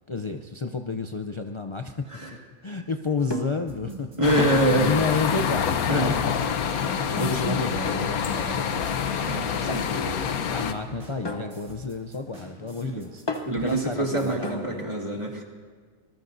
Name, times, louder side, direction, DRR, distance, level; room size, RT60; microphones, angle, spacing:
voice 1, 0.1-2.1 2.6-4.1 4.5-6.3 6.8-14.9, left 4 dB, 50° left, 5 dB, 0.3 m, -31 dB
sound 1, 3.3-3.7 4.4-4.8 5.4-5.7 6.8-7.3 7.8-8.6 9.7-10.0 11.2-14.8, left 2 dB, 20° left, 0.7 m, -36 dB
sound 2, 3.7-14.3, right 1 dB, 55° right, 3.1 m, -48 dB
voice 2, 3.8-4.9 5.9-6.2 6.7-6.8 7.2-7.6 9.2-10.3 12.8-13.0 13.5-15.4, right 1 dB, 20° right, 0 dB, 2.1 m, -26 dB
sound 3, 4.2-10.7, left 7 dB, 90° left, 1.3 m, -27 dB
26.0 x 20.5 x 2.7 m, 1.5 s
omnidirectional pair, 1.5 m